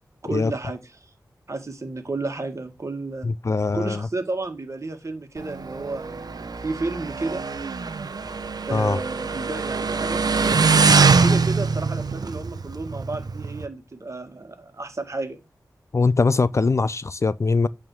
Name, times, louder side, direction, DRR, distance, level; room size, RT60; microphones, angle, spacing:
voice 1, 0.2-0.8 1.5-3.3 3.7-7.4 8.7-10.6 11.1-15.4, right 3 dB, 45° right, 1.8 m, -32 dB
voice 2, 3.2-4.1 8.7-9.0 15.9-17.7, left 4 dB, 45° left, 0.4 m, -22 dB
Motorcycle, 5.4-13.7, right 4 dB, 65° right, 0.8 m, -23 dB
8.8 x 3.6 x 6.0 m
wide cardioid pair, 65°, 7 cm